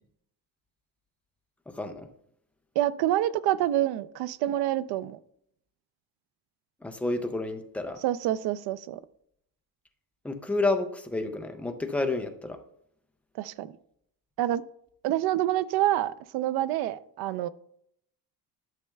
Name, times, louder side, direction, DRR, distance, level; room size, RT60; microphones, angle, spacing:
voice 1, 1.7-2.1 6.8-8.0 10.2-12.6, left 2 dB, 5° left, 0.3 m, -30 dB
voice 2, 2.8-5.2 8.0-9.0 13.4-13.7 14.4-14.6 15.0-17.5, right 13 dB, 90° right, 0.5 m, -27 dB
11.5 x 6.3 x 2.2 m
cardioid pair, 180°, 36 cm